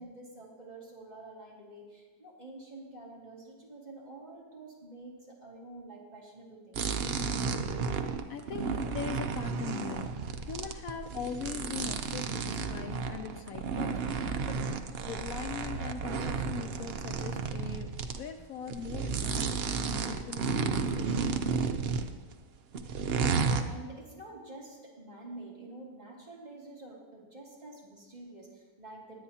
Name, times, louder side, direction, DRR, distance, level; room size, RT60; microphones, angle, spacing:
voice 1, 0.0-7.0 8.7-9.0 23.3-29.2, right 2 dB, 25° right, -5 dB, 2.6 m, -48 dB
sound 1, 6.7-18.2 18.7-22.3 22.7-23.6, right 5 dB, 55° right, 0.7 m, -32 dB
voice 2, 8.3-10.1 10.4-14.6 15.0-17.9 18.2-21.5, left 7 dB, 70° left, 7 dB, 1.0 m, -41 dB
20.5 x 8.4 x 2.8 m, 1.3 s
omnidirectional pair, 1.6 m